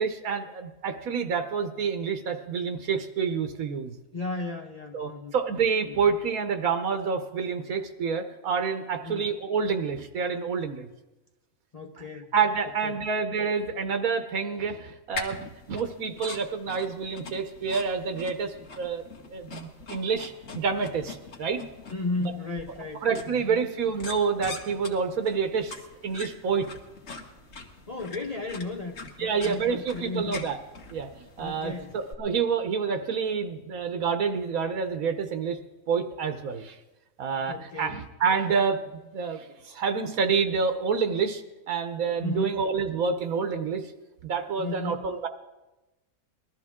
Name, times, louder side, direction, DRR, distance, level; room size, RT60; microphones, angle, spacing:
voice 1, 0.0-4.0 4.9-10.9 12.3-19.0 19.3-21.6 23.0-25.7 26.0-26.7 29.2-30.6 30.9-35.6 35.9-36.8 37.2-38.8 39.1-43.9 44.2-45.3, right 5 dB, 80° right, 7 dB, 1.3 m, -28 dB
voice 2, 4.1-5.3 5.9-6.0 9.0-9.3 11.7-12.3 12.8-13.0 21.9-23.6 27.9-30.5 31.4-32.0 37.5-38.0 42.2-42.6 44.6-45.1, left 3 dB, 35° left, 2 dB, 0.7 m, -35 dB
sound 1, 15.1-32.1, left 3 dB, 65° left, 1.8 m, -43 dB
21.0 x 13.0 x 3.6 m, 1.1 s
omnidirectional pair, 1.5 m